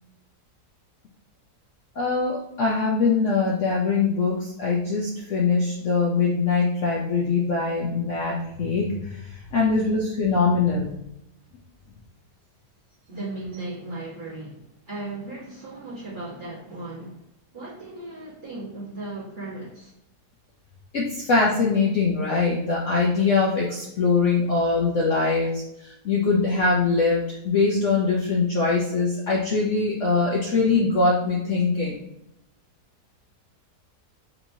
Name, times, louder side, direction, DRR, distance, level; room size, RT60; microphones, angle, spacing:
voice 1, 2.0-9.2 9.5-10.9 20.9-32.0, left 4 dB, 60° left, -4 dB, 0.8 m, -22 dB
voice 2, 13.1-14.6 14.9-17.2 17.5-19.9, right 2 dB, 30° right, -8 dB, 1.4 m, -36 dB
4.4 x 2.8 x 2.7 m, 0.82 s
omnidirectional pair, 1.8 m